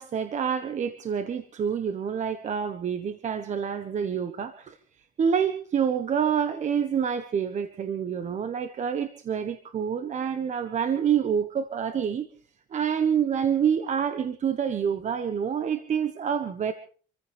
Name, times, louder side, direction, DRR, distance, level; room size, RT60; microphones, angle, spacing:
voice 1, 0.0-4.8 5.2-12.3 12.7-16.7, right 7 dB, 45° right, 9 dB, 1.4 m, -27 dB
27.0 x 15.0 x 3.5 m, 0.43 s
cardioid pair, 110°, 17 cm